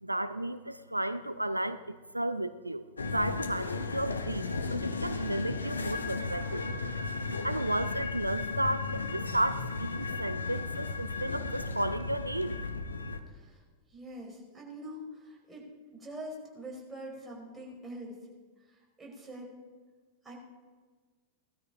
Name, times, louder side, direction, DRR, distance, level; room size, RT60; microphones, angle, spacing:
voice 1, 0.0-6.7 7.4-12.6, right 1 dB, 85° right, 13 dB, 0.5 m, -33 dB
sound 1, 3.0-13.2, left 3 dB, 75° left, 1.1 m, -35 dB
voice 2, 13.3-13.6 13.9-18.2 18.6-19.5 20.2-20.3, equal, 10° right, -2 dB, 4.7 m, -44 dB
18.5 x 12.5 x 5.0 m, 1.5 s
figure-of-eight pair, 90°, 0 cm